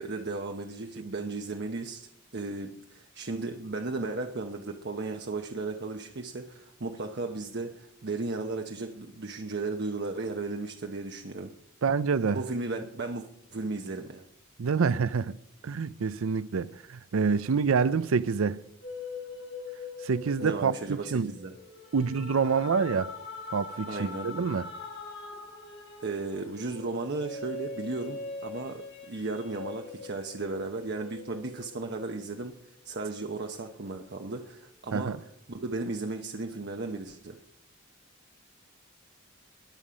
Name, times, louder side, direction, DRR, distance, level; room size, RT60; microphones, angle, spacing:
voice 1, 0.0-11.5 12.3-14.2 20.4-21.5 23.9-24.5 26.0-37.4, right 3 dB, 55° right, 0.9 m, -35 dB
voice 2, 11.8-12.4 14.6-15.4 15.6-18.6 20.0-21.3 21.9-23.1 23.5-24.7 34.9-35.2, right 5 dB, 80° right, 0.5 m, -27 dB
sound 1, 18.8-32.5 33.0-34.6, left 4 dB, 60° left, 5.1 m, -43 dB
21.0 x 7.3 x 5.1 m
head